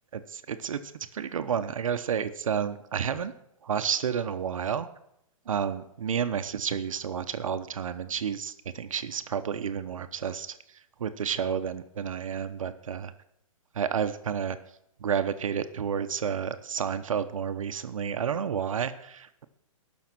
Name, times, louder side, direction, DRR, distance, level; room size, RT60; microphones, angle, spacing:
voice 1, 0.1-0.8 1.1-3.3 3.6-4.9 5.5-10.6 11.0-13.1 13.7-14.6 15.0-19.4, right 7 dB, 75° right, 10 dB, 0.9 m, -30 dB
17.0 x 6.4 x 6.0 m, 0.78 s
hypercardioid pair, 170°, 17 cm